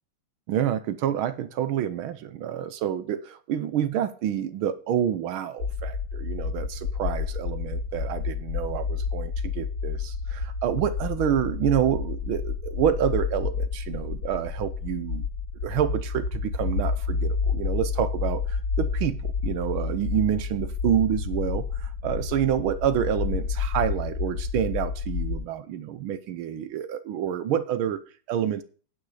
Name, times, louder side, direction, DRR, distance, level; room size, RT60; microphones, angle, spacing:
voice 1, 0.5-15.2 15.6-28.6, right 10 dB, 80° right, 12 dB, 1.6 m, -28 dB
sound 1, 5.6-25.4, left 5 dB, 80° left, 3.1 m, -30 dB
9.5 x 9.3 x 4.9 m, 0.41 s
omnidirectional pair, 2.3 m